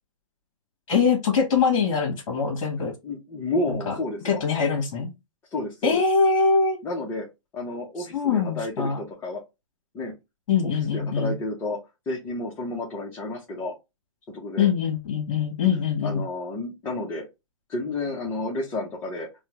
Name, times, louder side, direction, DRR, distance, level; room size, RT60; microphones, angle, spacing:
voice 1, 0.9-2.9 3.7-3.9 4.2-5.1 5.8-6.8 8.0-9.0 10.5-11.4 14.6-16.2, left 5 dB, 45° left, 1.3 m, -23 dB
voice 2, 3.0-4.4 5.5-6.0 6.8-7.3 7.5-9.4 9.9-10.1 10.6-11.8 12.1-13.7 14.3-14.7 16.0-17.3 17.7-19.5, left 2 dB, 15° left, 0.7 m, -31 dB
4.3 x 2.1 x 3.0 m
hypercardioid pair, 150°, 17 cm